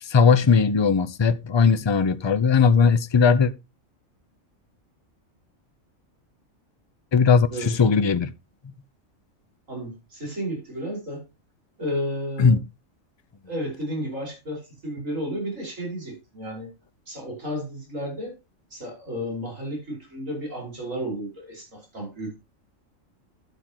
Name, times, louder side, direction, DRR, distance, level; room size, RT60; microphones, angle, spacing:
voice 1, 0.0-3.5 7.1-8.3 12.4-12.6, left 5 dB, 30° left, 0.5 m, -18 dB
voice 2, 9.7-11.3 11.8-12.6 13.4-16.7 17.1-18.3 18.7-22.3, equal, 70° right, 5.7 m, -32 dB
12.5 x 8.4 x 3.0 m
omnidirectional pair, 1.4 m